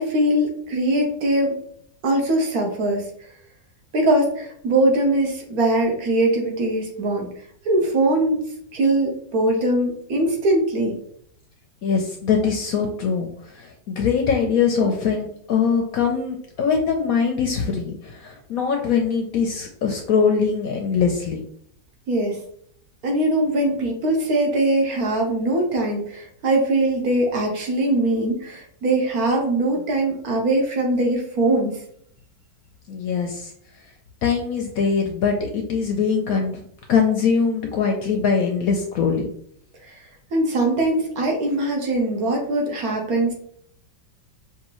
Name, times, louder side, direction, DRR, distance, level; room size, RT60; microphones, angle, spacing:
voice 1, 0.0-1.6 2.0-3.0 3.9-7.3 7.6-8.5 8.7-11.0 22.1-22.4 23.0-31.8 39.8-40.0 40.3-43.3, right 1 dB, 60° right, 1 dB, 1.3 m, -21 dB
voice 2, 11.8-13.3 13.5-21.4 32.9-33.5 34.2-36.6 36.9-39.3, left 6 dB, 70° left, 3 dB, 0.9 m, -22 dB
5.7 x 2.8 x 3.0 m, 0.65 s
omnidirectional pair, 1.9 m